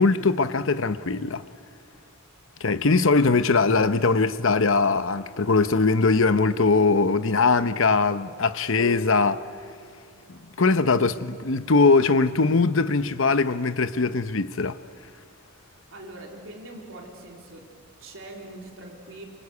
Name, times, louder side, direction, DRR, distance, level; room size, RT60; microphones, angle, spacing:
voice 1, 0.0-1.4 2.6-9.4 10.3-14.8, left 4 dB, 60° left, 0.9 m, -21 dB
sound 1, 8.8-12.1, left 2 dB, 80° left, 2.2 m, -43 dB
voice 2, 15.9-17.7 18.0-19.2, right 1 dB, 60° right, 3.9 m, -42 dB
28.5 x 24.5 x 8.4 m
head